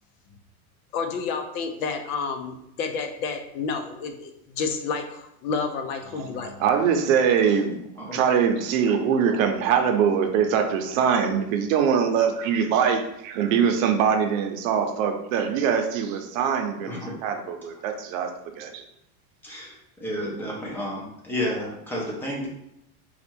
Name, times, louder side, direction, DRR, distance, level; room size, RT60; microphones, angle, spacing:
voice 1, 0.9-6.6, left 5 dB, 75° left, 5 dB, 0.8 m, -30 dB
voice 2, 6.2-18.3 18.6-18.8, right 7 dB, 60° right, 5 dB, 0.7 m, -23 dB
voice 3, 19.4-19.7 20.0-22.5, left 1 dB, 5° left, -3 dB, 0.5 m, -31 dB
4.1 x 2.4 x 4.4 m, 0.80 s
supercardioid pair, 160°, 44 cm